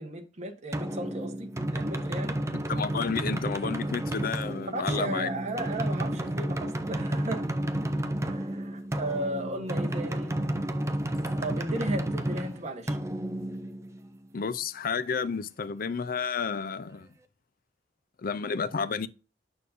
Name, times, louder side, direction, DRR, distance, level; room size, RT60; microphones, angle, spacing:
voice 1, 0.0-2.4 4.7-7.5 8.2-10.3 11.4-13.0, right 1 dB, 35° right, 1.1 m, -35 dB
sound 1, 0.7-14.3, right 1 dB, 15° right, 0.6 m, -31 dB
voice 2, 2.7-5.3 14.3-17.1 18.2-19.1, left 5 dB, 50° left, 0.5 m, -31 dB
6.9 x 6.5 x 2.6 m
head